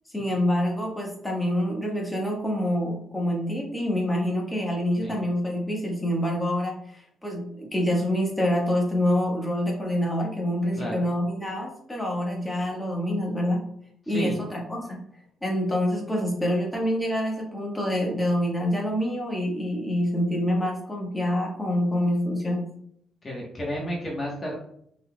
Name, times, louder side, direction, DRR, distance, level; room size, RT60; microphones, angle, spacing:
voice 1, 0.1-13.6 14.1-15.0 15.4-22.6, left 1 dB, 10° left, -1 dB, 1.4 m, -26 dB
voice 2, 10.8-11.1 14.1-14.3 23.2-24.6, equal, 30° left, -3 dB, 1.2 m, -31 dB
5.4 x 4.0 x 2.3 m, 0.68 s
cardioid pair, 90°, 0 cm